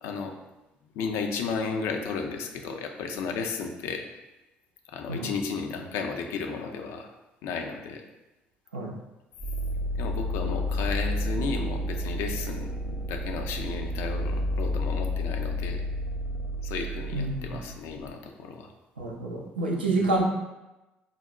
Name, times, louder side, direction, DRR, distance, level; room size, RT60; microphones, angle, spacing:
voice 1, 0.0-0.3 0.9-4.1 4.9-7.1 7.4-8.0 10.0-15.8 16.6-18.7 19.9-20.1, left 5 dB, 65° left, 4 dB, 0.3 m, -33 dB
sound 1, 9.4-18.1, left 1 dB, 10° left, 0.6 m, -31 dB
voice 2, 17.1-17.6 19.0-20.2, right 2 dB, 85° right, -1 dB, 0.4 m, -28 dB
3.8 x 2.0 x 2.2 m, 1.0 s
figure-of-eight pair, 50°, 5 cm